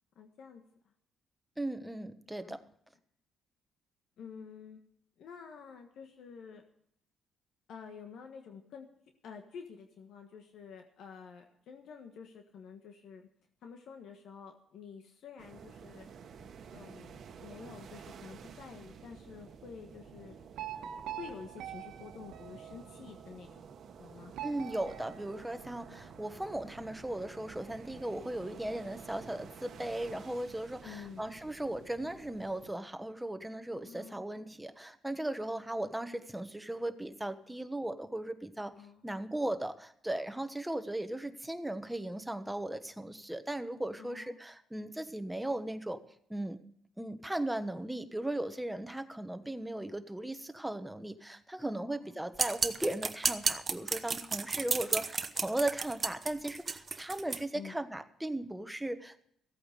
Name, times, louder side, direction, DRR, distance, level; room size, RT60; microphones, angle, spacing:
voice 1, 0.1-0.6 2.4-2.6 4.2-4.8 5.2-6.6 7.7-8.9 9.2-13.3 13.6-16.1 16.7-20.3 21.2-23.6 24.0-24.3 30.8-31.2 33.8-34.2 38.8-39.0 44.0-44.4 51.9-52.2 57.5-57.7, left 6 dB, 75° left, 4 dB, 1.4 m, -49 dB
voice 2, 1.6-2.6 24.4-38.7 39.0-46.0 46.3-46.6 47.0-59.3, right 1 dB, 10° right, 9 dB, 1.2 m, -37 dB
sound 1, 15.4-32.7, right 6 dB, 65° right, 1.3 m, -51 dB
sound 2, 20.6-23.2 24.3-26.1, right 11 dB, 80° right, 1.5 m, -45 dB
sound 3, 52.4-57.4, right 4 dB, 35° right, 1.0 m, -32 dB
15.0 x 8.7 x 6.7 m, 0.71 s
cardioid pair, 90°, 0 cm